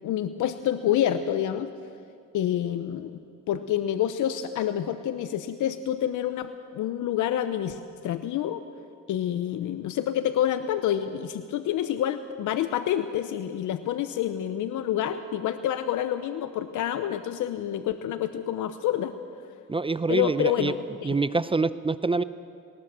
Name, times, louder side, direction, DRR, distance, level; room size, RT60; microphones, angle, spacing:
voice 1, 0.0-1.7 2.3-3.2 3.5-8.6 9.1-19.1 20.1-21.1, left 11 dB, 80° left, 10 dB, 0.9 m, -28 dB
voice 2, 19.7-20.7 21.0-22.2, right 3 dB, 20° right, 14 dB, 0.6 m, -25 dB
19.0 x 18.5 x 7.5 m, 2.3 s
cardioid pair, 90°, 30 cm